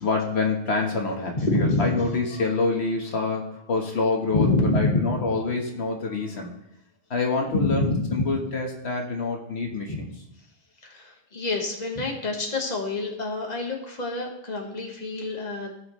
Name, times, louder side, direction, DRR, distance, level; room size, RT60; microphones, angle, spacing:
voice 1, 0.0-6.5 7.1-10.1, left 3 dB, 85° left, 1 dB, 1.7 m, -27 dB
voice 2, 1.3-2.0 4.3-5.3 7.5-8.3 9.9-10.0 10.8-15.7, left 2 dB, 40° left, 0 dB, 1.6 m, -26 dB
16.5 x 6.3 x 3.2 m, 0.80 s
omnidirectional pair, 1.1 m